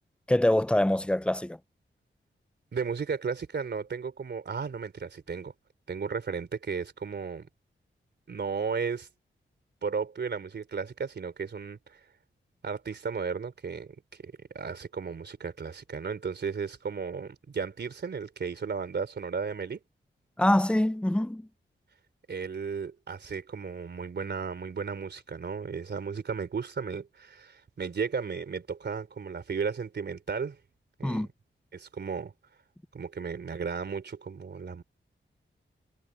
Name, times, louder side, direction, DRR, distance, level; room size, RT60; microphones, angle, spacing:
voice 1, 0.3-1.6 20.4-21.5 31.0-31.3, left 1 dB, 5° left, 0.5 m, -24 dB
voice 2, 2.7-5.5 5.9-7.5 8.3-9.1 9.8-12.0 12.6-19.8 22.3-30.6 31.0-31.3 31.7-32.3 32.9-34.8, right 5 dB, 60° right, 3.4 m, -34 dB
wide cardioid pair, 140°, 20 cm